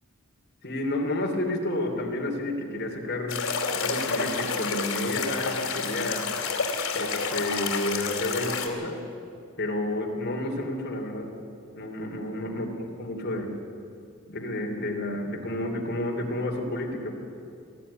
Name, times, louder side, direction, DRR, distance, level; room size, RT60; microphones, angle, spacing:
voice 1, 0.6-6.2 6.9-9.0 9.6-11.3 11.8-13.5 14.3-17.1, left 1 dB, 50° left, 1 dB, 3.0 m, -30 dB
sound 1, 3.3-8.7, left 5 dB, 80° left, 2.6 m, -29 dB
20.0 x 13.5 x 9.8 m, 2.5 s
head